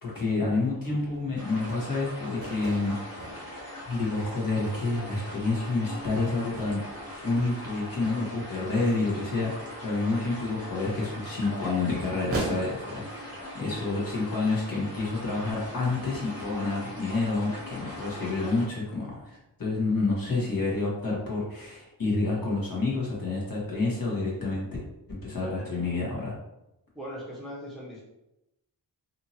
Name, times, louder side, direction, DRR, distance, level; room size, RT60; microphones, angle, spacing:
voice 1, 0.0-3.0 3.9-24.7 25.1-26.4, left 3 dB, 50° left, -5 dB, 1.3 m, -29 dB
sound 1, 0.6-12.5, right 2 dB, 30° right, 0.7 m, -43 dB
sound 2, 1.3-18.7, left 1 dB, 35° left, 1.1 m, -41 dB
voice 2, 25.3-25.7 26.9-28.0, equal, ahead, -6 dB, 0.9 m, -40 dB
2.7 x 2.7 x 2.7 m, 0.89 s
cardioid pair, 60°, 44 cm